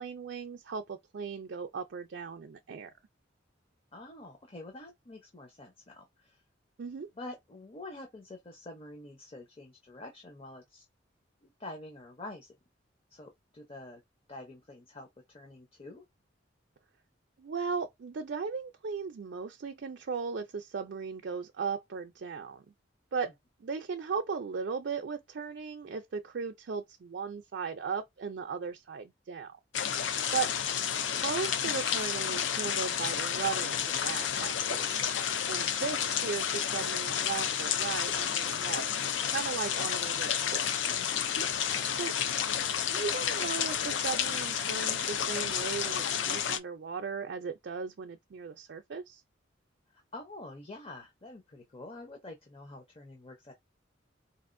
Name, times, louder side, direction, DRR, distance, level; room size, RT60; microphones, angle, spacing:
voice 1, 0.0-2.9 6.8-7.1 17.4-22.7 23.1-23.3 23.6-29.6 30.3-30.5 31.2-34.9 35.5-38.9 39.3-40.7 42.0-42.1 42.9-49.2, right 5 dB, 60° right, 0.4 m, -37 dB
voice 2, 3.9-6.4 7.2-10.9 11.4-12.5 13.1-14.0 14.3-16.0 30.6-30.7 39.8-39.9 41.7-42.0 49.9-53.5, left 2 dB, 30° left, 0.7 m, -47 dB
sound 1, 29.7-46.6, left 8 dB, 70° left, 0.4 m, -31 dB
4.1 x 2.4 x 2.5 m
head